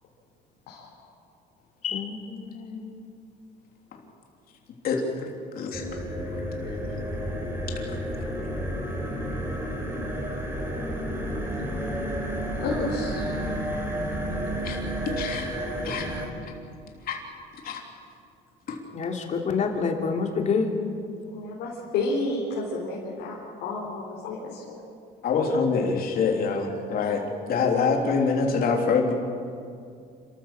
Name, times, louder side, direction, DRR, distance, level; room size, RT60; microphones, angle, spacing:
voice 1, 1.8-3.0 18.9-20.7, left 5 dB, 45° left, 2 dB, 3.0 m, -28 dB
sound 1, 5.7-16.3, equal, 15° right, 4.6 m, -31 dB
voice 2, 12.6-13.3 21.3-23.4 23.6-24.8, left 2 dB, 90° left, -5 dB, 4.4 m, -30 dB
voice 3, 15.2-15.5 15.8-16.0 17.1-17.2 17.6-17.8 18.7-18.8 25.2-27.2 27.5-29.1, left 5 dB, 60° left, 1 dB, 3.3 m, -24 dB
28.5 x 14.0 x 7.6 m, 2.4 s
cardioid pair, 110°, 17 cm